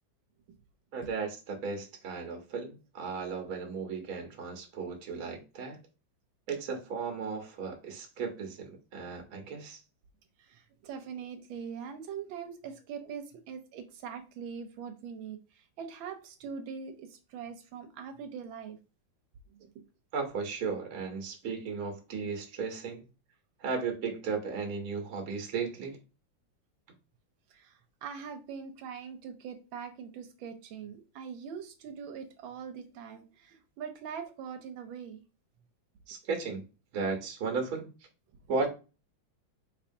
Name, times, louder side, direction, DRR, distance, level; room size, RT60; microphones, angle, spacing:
voice 1, 0.9-5.8 6.5-9.8 20.1-23.0 23.6-26.0 36.1-36.6 36.9-37.9 38.5-38.7, right 5 dB, 55° right, 1.3 m, -35 dB
voice 2, 10.4-18.8 19.5-19.8 27.5-35.2, right 7 dB, 85° right, 1.4 m, -42 dB
4.3 x 2.9 x 2.6 m
omnidirectional pair, 2.1 m